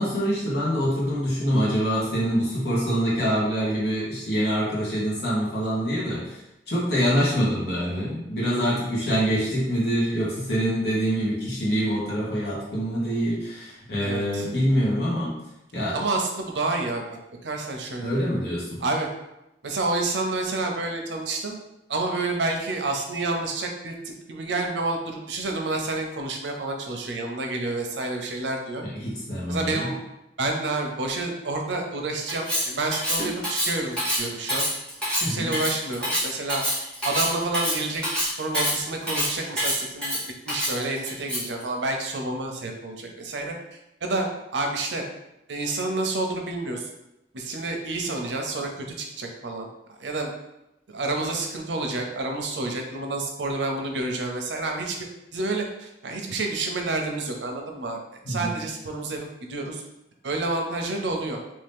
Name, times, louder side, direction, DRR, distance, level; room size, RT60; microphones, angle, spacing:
voice 1, 0.0-6.4 6.7-15.3 15.7-16.0 18.0-18.8 28.8-29.9 35.2-35.5 58.2-58.5, equal, 65° left, -6 dB, 1.4 m, -25 dB
voice 2, 14.0-14.5 15.9-18.1 18.8-19.1 19.6-21.6 21.9-28.8 29.5-30.0 30.4-34.6 35.2-36.6 37.0-40.2 40.5-43.5 44.0-44.3 44.5-45.0 45.5-46.9 47.3-50.3 50.9-55.0 55.3-58.0 58.3-59.8 60.2-61.4, right 2 dB, 85° right, 2 dB, 0.6 m, -29 dB
Cutlery silverware, 32.3-41.6, equal, 5° left, 1.2 m, -27 dB
3.0 x 2.8 x 3.5 m, 0.90 s
head